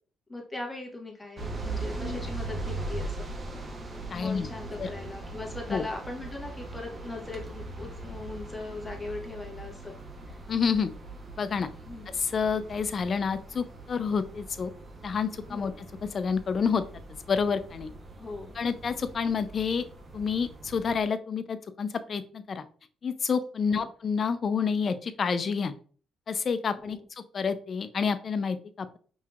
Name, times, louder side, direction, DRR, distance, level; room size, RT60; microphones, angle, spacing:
voice 1, 0.3-3.3 4.1-9.9 10.3-10.4 11.8-12.1 15.5-15.7 18.2-18.5 23.7-23.9 26.8-27.0, left 2 dB, 20° left, 0 dB, 1.3 m, -39 dB
sound 1, 1.4-21.0, right 2 dB, 35° right, 0.8 m, -40 dB
voice 2, 4.1-4.5 4.8-4.9 5.7-5.8 10.5-10.9 11.4-11.7 12.1-14.7 15.0-15.7 16.1-16.8 17.3-17.9 18.5-19.9 20.1-22.6 23.0-25.7 26.3-27.0 27.3-29.0, left 6 dB, 45° left, 11 dB, 0.4 m, -28 dB
5.4 x 2.8 x 2.3 m, 0.43 s
cardioid pair, 90°, 0 cm